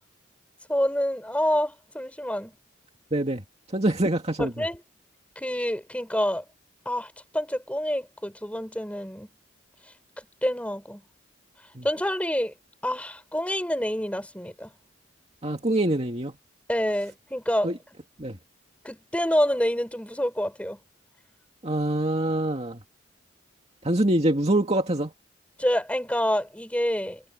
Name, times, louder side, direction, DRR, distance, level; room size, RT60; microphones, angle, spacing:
voice 1, 0.7-2.5 4.4-4.8 5.4-6.4 6.8-9.3 10.4-11.0 11.8-12.5 12.8-14.7 16.7-17.7 18.8-20.8 25.6-27.2, equal, 5° left, 7.9 m, -27 dB
voice 2, 3.1-3.4 3.7-4.5 11.7-11.8 15.4-16.3 17.6-17.8 18.2-18.4 21.6-22.8 23.8-25.1, right 1 dB, 30° right, 2.2 m, -24 dB
head